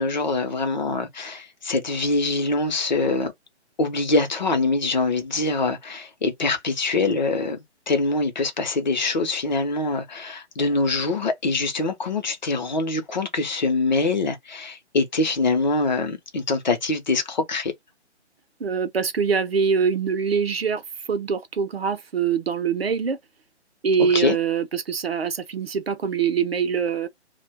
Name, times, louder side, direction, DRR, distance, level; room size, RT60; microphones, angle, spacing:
voice 1, 0.0-3.3 3.8-17.7 24.0-24.4, left 3 dB, 40° left, 0.7 m, -24 dB
voice 2, 18.6-20.8 21.1-23.2 23.8-27.1, right 6 dB, 60° right, 0.7 m, -24 dB
2.4 x 2.2 x 3.3 m
figure-of-eight pair, 145°, 35 cm